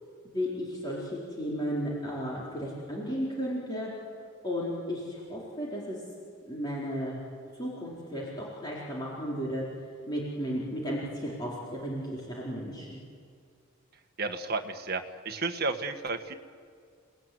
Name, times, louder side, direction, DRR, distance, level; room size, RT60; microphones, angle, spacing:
voice 1, 0.3-3.9 4.4-6.0 6.5-7.2 7.6-9.6 10.1-13.0, equal, 20° left, -6 dB, 4.5 m, -34 dB
voice 2, 14.2-16.3, right 3 dB, 45° right, 6 dB, 1.6 m, -32 dB
30.0 x 19.5 x 9.6 m, 2.2 s
head